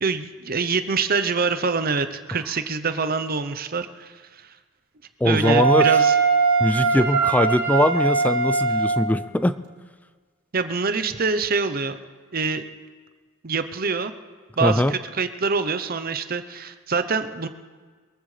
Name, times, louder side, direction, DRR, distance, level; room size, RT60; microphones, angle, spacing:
voice 1, 0.0-4.5 5.2-6.1 10.5-12.0 12.3-12.6 13.4-14.1 14.6-17.5, right 4 dB, 45° right, 10 dB, 0.7 m, -25 dB
voice 2, 5.2-5.9 6.6-9.6 14.6-14.9, left 1 dB, 5° left, 14 dB, 0.4 m, -21 dB
Wind instrument woodwind instrument, 5.4-9.2, right 4 dB, 85° right, 3.5 m, -21 dB
22.5 x 14.5 x 3.3 m, 1.5 s
head